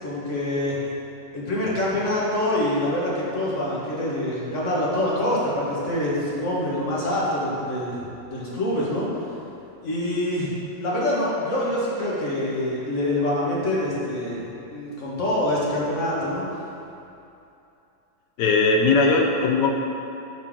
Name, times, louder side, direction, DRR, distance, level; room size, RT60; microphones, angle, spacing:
voice 1, 0.0-0.8 1.3-9.1 9.8-10.5 10.8-16.4, left 1 dB, 40° left, -6 dB, 1.7 m, -25 dB
voice 2, 18.4-19.7, left 3 dB, 70° left, 1 dB, 1.2 m, -19 dB
12.0 x 4.3 x 3.7 m, 2.8 s
omnidirectional pair, 2.0 m